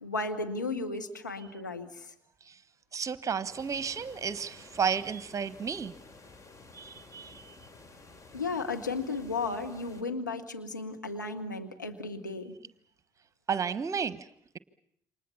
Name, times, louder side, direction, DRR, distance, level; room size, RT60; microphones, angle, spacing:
voice 1, 0.0-2.1 8.3-12.5, left 3 dB, 85° left, 1.3 m, -34 dB
voice 2, 2.9-5.9 6.7-7.5 13.5-14.3, right 6 dB, 35° right, 1.1 m, -32 dB
sound 1, 3.5-10.0, left 3 dB, 35° left, 3.2 m, -53 dB
28.5 x 25.0 x 7.1 m
figure-of-eight pair, 50°, 10 cm